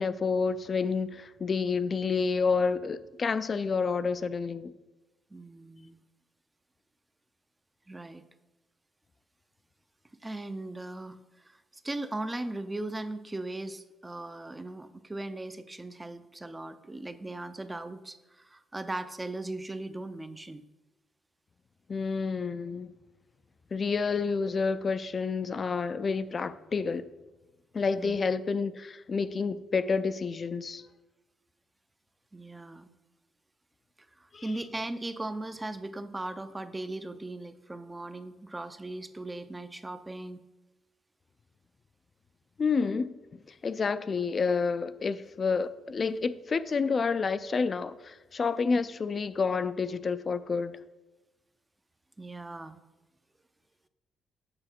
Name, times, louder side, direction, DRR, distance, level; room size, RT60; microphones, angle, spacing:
voice 1, 0.0-4.7 21.9-22.9 23.7-27.1 27.7-30.8 34.3-34.4 42.6-43.2 43.6-50.8, left 5 dB, 40° left, 0.4 m, -29 dB
voice 2, 5.3-6.0 7.9-8.2 10.2-11.2 11.4-11.6 11.8-20.6 28.0-28.2 32.3-32.9 34.2-40.4 52.2-52.8, right 2 dB, 15° right, 0.5 m, -38 dB
7.7 x 5.9 x 4.4 m
cardioid pair, 90°, 0 cm